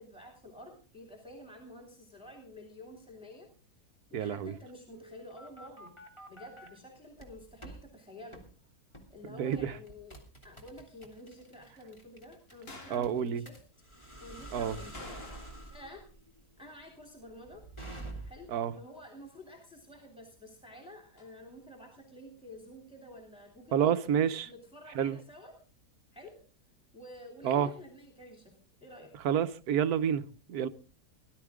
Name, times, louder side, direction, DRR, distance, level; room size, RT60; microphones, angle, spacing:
voice 1, 0.0-3.5 4.1-5.9 6.3-8.4 9.1-10.2 10.4-13.6 14.2-15.1 15.6-16.0 16.6-17.6 18.2-23.9 24.4-25.5 26.1-26.4 26.9-28.5 28.8-29.1, left 1 dB, 5° right, 3.2 m, -50 dB
voice 2, 4.1-4.5 9.4-9.7 12.9-13.4 14.5-14.8 18.5-18.7 23.7-24.5 24.9-25.2 27.4-27.7 29.2-30.7, right 9 dB, 75° right, 1.4 m, -29 dB
sound 1, 4.9-6.7 7.2-7.8 8.3-8.5 8.9-9.2 9.5-18.6, right 2 dB, 15° left, 2.9 m, -48 dB
sound 2, 12.7-13.1 14.9-15.8 16.1-16.2 21.2-21.3, left 2 dB, 40° left, 2.2 m, -48 dB
19.0 x 12.0 x 3.7 m
omnidirectional pair, 1.7 m